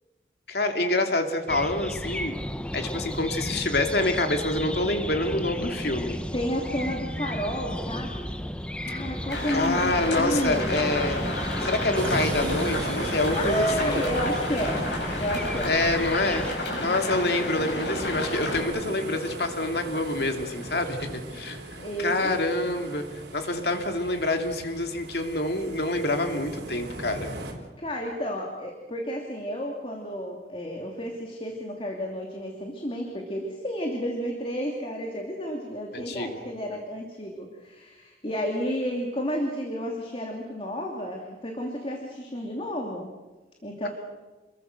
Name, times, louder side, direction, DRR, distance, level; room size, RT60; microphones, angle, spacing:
voice 1, 0.5-2.4 2.7-6.2 9.5-11.2 11.6-14.0 15.6-16.5 16.8-21.6 22.0-27.3 35.9-36.4 36.7-36.8, left 2 dB, 65° left, 5 dB, 2.7 m, -27 dB
sound 1, 1.5-16.5, equal, 5° left, 0.9 m, -34 dB
voice 2, 6.3-8.3 8.8-10.8 13.0-14.8 15.1-15.8 21.8-22.2 27.1-27.2 27.8-43.1 43.6-43.9, equal, 30° left, 1 dB, 2.9 m, -31 dB
sound 2, 9.3-18.6, left 1 dB, 90° left, 6.9 m, -31 dB
sound 3, 11.9-27.5, right 1 dB, 75° right, 4.6 m, -38 dB
29.0 x 22.0 x 6.6 m, 1.2 s
head